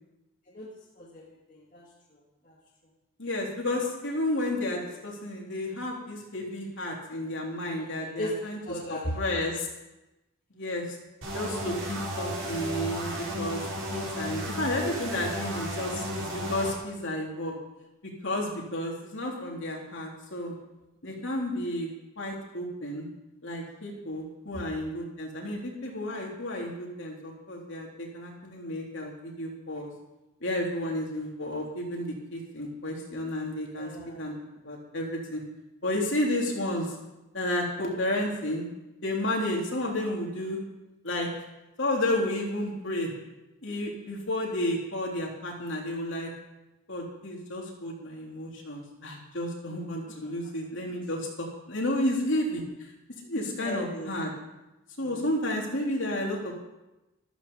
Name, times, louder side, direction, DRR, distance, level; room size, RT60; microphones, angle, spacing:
voice 1, 1.0-2.6 7.6-9.2 21.2-21.4 24.5-24.7 33.8-34.2 49.7-50.3 53.3-54.2 55.0-55.3, left 1 dB, 40° left, -4 dB, 2.1 m, -39 dB
voice 2, 3.2-8.6 8.9-9.7 10.5-10.8 11.3-13.6 13.9-17.5 18.0-20.5 21.0-21.9 22.2-23.1 23.4-29.9 30.4-33.9 34.2-34.3 34.6-35.4 35.8-36.9 37.3-38.7 39.0-40.6 41.0-41.3 41.8-43.1 43.6-46.3 46.9-52.6 53.3-54.3 55.0-56.5, left 1 dB, 60° left, -2 dB, 3.5 m, -31 dB
sound 1, 11.2-16.7, equal, 75° right, 4.9 m, -34 dB
14.0 x 13.5 x 5.6 m, 0.99 s
head